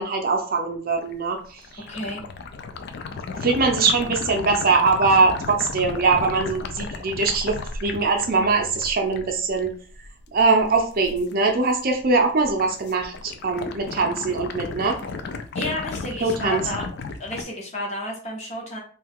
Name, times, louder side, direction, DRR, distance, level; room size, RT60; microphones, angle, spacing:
voice 1, 0.0-1.8 3.3-9.7 10.3-15.0 16.2-16.7, right 4 dB, 45° right, 3 dB, 0.5 m, -22 dB
sound 1, 1.0-11.3 11.7-12.1 12.4-17.4, left 4 dB, 50° left, 0.3 m, -34 dB
voice 2, 1.9-2.2 15.5-16.8 17.2-18.8, left 1 dB, 35° left, -1 dB, 0.9 m, -31 dB
2.7 x 2.3 x 3.5 m, 0.43 s
head